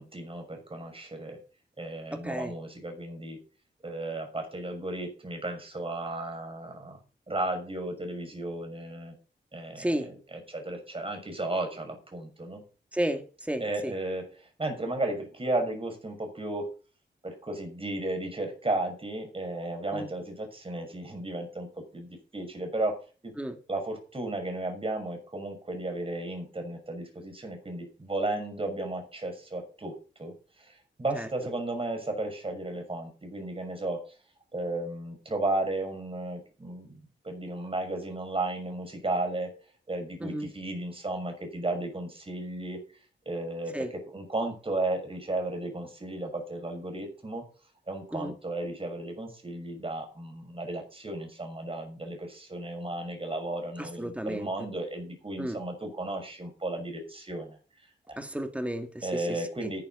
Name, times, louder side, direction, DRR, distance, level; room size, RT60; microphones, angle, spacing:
voice 1, 0.0-1.4 1.8-3.4 3.8-7.0 7.3-9.1 9.5-10.1 10.5-12.6 13.6-16.7 17.2-23.0 23.2-23.3 23.7-34.0 34.5-36.9 37.2-39.5 39.9-42.8 43.2-47.4 47.9-57.6 58.1-58.2 59.0-59.8, right 2 dB, 30° right, 6.4 m, -34 dB
voice 2, 2.1-2.5 9.8-10.1 12.9-13.9 19.9-20.1 23.4-23.6 31.1-31.3 40.2-40.5 43.7-43.9 48.1-48.3 53.8-54.5 55.4-55.6 58.2-59.4, right 1 dB, 5° right, 2.3 m, -33 dB
14.0 x 10.5 x 4.1 m
cardioid pair, 75°, 19 cm